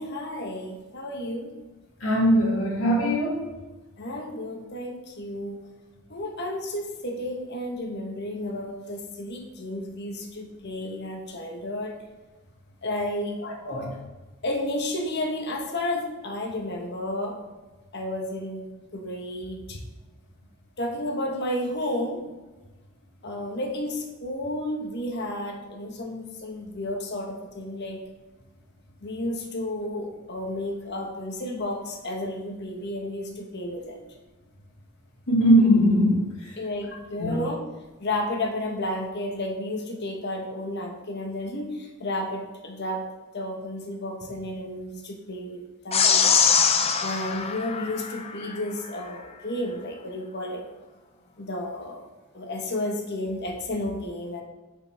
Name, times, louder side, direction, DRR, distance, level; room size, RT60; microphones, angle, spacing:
voice 1, 0.0-1.5 4.0-5.6 6.1-12.0 12.8-13.4 14.4-17.4 17.9-19.8 20.8-22.2 23.2-28.0 29.0-34.0 36.6-37.6 38.0-43.0 43.3-46.4 47.0-50.6 51.4-52.0 52.3-54.4, left 1 dB, 55° left, 2 dB, 1.3 m, -32 dB
voice 2, 2.0-3.4 13.4-13.9 35.3-36.3 37.2-37.5, equal, 75° left, -2 dB, 2.4 m, -21 dB
sound 1, 45.9-48.6, left 6 dB, 30° left, 0.6 m, -23 dB
8.5 x 6.7 x 3.6 m, 1.2 s
head